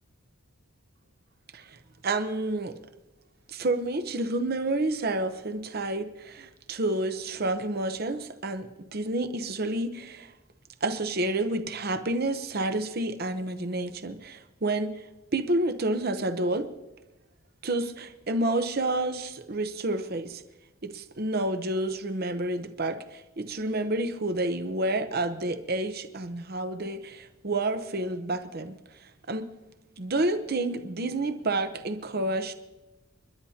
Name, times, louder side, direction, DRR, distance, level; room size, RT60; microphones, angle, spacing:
voice 1, 1.5-2.8 3.5-10.3 10.8-16.7 17.6-20.4 20.8-29.5 30.0-32.5, right 2 dB, 45° right, 9 dB, 0.8 m, -29 dB
29.0 x 11.5 x 2.8 m, 1.0 s
head